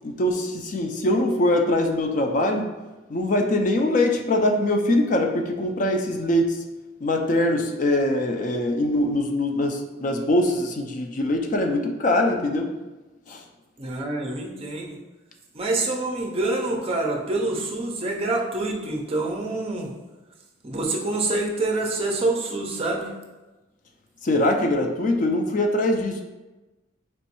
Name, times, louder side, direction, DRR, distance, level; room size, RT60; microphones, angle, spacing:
voice 1, 0.0-2.7 3.1-6.6 7.0-12.7 13.3-13.4 24.2-26.2, left 1 dB, 40° left, 4 dB, 0.4 m, -23 dB
voice 2, 13.8-15.0 15.5-19.9 20.6-23.1, right 2 dB, 30° right, 0 dB, 0.5 m, -26 dB
4.4 x 3.1 x 2.9 m, 1.1 s
head